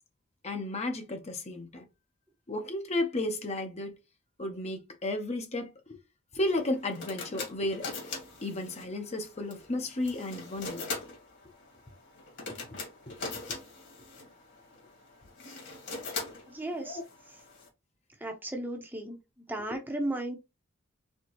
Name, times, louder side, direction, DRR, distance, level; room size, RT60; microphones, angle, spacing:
voice 1, 0.4-1.9 2.5-3.9 4.4-6.0 6.3-7.9 8.4-10.9 12.5-12.6 13.1-13.6 16.8-17.0 19.7-19.8, left 1 dB, 35° left, 0.8 m, -33 dB
sound 1, 6.5-17.7, left 4 dB, 60° left, 2.1 m, -42 dB
voice 2, 16.5-17.0 18.2-19.2 19.5-20.4, right 1 dB, 10° right, 0.8 m, -34 dB
4.4 x 3.6 x 3.0 m
head